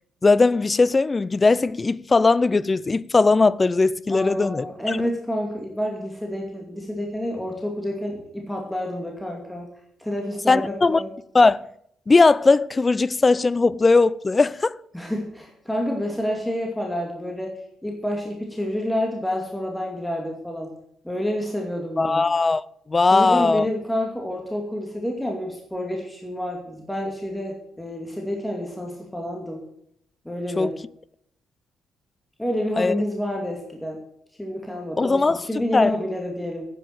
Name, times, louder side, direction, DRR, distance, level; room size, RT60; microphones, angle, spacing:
voice 1, 0.2-5.0 10.5-11.0 11.3-11.6 12.1-14.8 22.0-22.6 22.9-23.7 30.6-30.7 32.8-32.9 35.0-35.4 35.7-35.9, left 3 dB, 25° left, 0.5 m, -19 dB
voice 2, 4.1-9.7 10.0-11.1 14.9-20.7 21.0-22.3 23.1-29.6 30.2-30.7 32.4-34.0 34.4-36.7, left 1 dB, 5° left, 2.5 m, -29 dB
10.5 x 9.2 x 7.7 m
cardioid pair, 90°, 0 cm